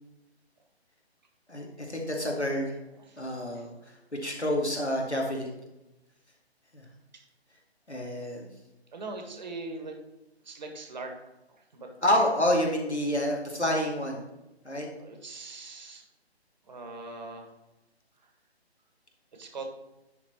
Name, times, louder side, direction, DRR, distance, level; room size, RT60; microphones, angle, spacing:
voice 1, 1.5-2.8 3.2-3.7 4.2-5.6 6.7-6.8 7.9-8.5 12.0-14.2 14.6-14.9, left 1 dB, 90° left, 0 dB, 2.1 m, -28 dB
voice 2, 3.0-3.7 7.1-7.3 8.9-9.9 10.4-11.1 11.6-11.9 14.9-16.0 16.7-17.5 18.2-18.3 19.3-19.6, right 3 dB, 40° right, 3 dB, 1.5 m, -41 dB
10.5 x 4.0 x 4.2 m, 0.97 s
figure-of-eight pair, 145°, 33 cm